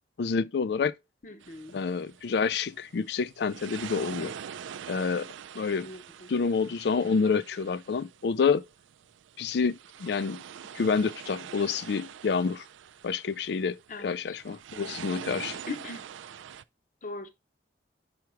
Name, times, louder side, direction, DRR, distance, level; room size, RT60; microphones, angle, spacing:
voice 1, 0.2-0.9 1.7-4.3 4.9-5.3 5.5-5.9 6.3-8.6 9.4-10.4 10.7-12.6 13.0-15.6, left 5 dB, 60° left, 0.4 m, -28 dB
voice 2, 1.2-1.8 5.8-6.3 13.9-14.4 15.7-16.1 17.0-17.3, left 3 dB, 45° left, 0.8 m, -40 dB
sound 1, 1.4-16.6, right 8 dB, 90° right, 0.4 m, -44 dB
5.8 x 5.0 x 4.5 m
head